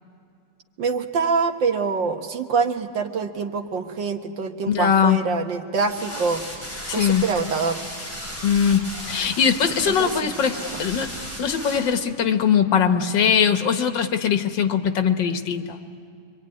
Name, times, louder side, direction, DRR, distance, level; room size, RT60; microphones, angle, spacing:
voice 1, 0.8-6.4 6.9-7.8 9.9-10.4 10.7-10.8, right 5 dB, 90° right, 5 dB, 2.0 m, -25 dB
voice 2, 4.7-5.2 6.9-7.3 8.4-11.1 11.4-15.8, left 7 dB, 90° left, 7 dB, 1.9 m, -21 dB
sound 1, 5.7-11.8, equal, 5° left, 7.1 m, -35 dB
25.5 x 23.5 x 9.6 m, 2.4 s
omnidirectional pair, 1.9 m